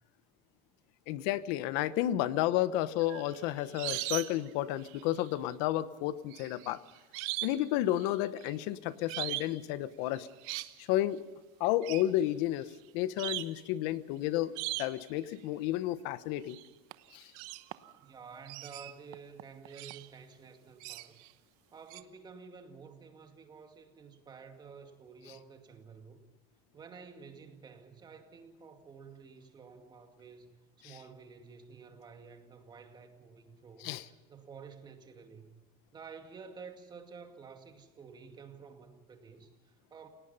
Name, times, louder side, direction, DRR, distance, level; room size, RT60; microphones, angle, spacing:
voice 1, 1.1-6.8 7.4-10.3 10.8-11.2 11.6-14.5 14.8-16.6 17.1-17.3 33.8-34.0, left 14 dB, 65° left, 15 dB, 1.1 m, -31 dB
sound 1, 3.0-4.5 4.8-5.3 6.3-7.6 7.9-8.5 9.1-9.6 10.1-10.7 11.8-12.1 12.7-12.8 13.2-13.6 14.6-15.1 16.5-16.7 16.9-18.0 18.5-20.1 20.8-21.3 21.9-22.0, right 19 dB, 70° right, 1.0 m, -39 dB
voice 2, 18.0-21.2 21.7-26.2 26.7-33.9 34.3-35.6 35.9-40.1, right 5 dB, 25° right, 5 dB, 2.2 m, -51 dB
28.0 x 18.0 x 5.5 m, 1.2 s
cardioid pair, 145°, 19 cm